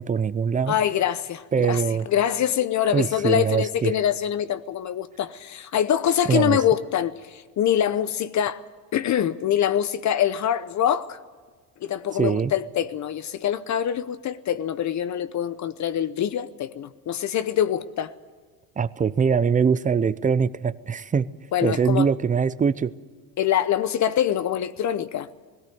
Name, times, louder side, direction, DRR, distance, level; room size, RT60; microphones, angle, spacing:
voice 1, 0.0-0.8 1.5-2.1 2.9-4.0 6.3-6.6 12.2-12.5 18.8-21.3 21.6-22.9, right 6 dB, 20° right, 0.5 m, -22 dB
voice 2, 0.7-8.6 8.9-11.2 11.8-18.1 21.5-22.1 23.4-25.3, left 10 dB, 40° left, 0.8 m, -24 dB
18.5 x 16.5 x 9.4 m
supercardioid pair, 105°, 42 cm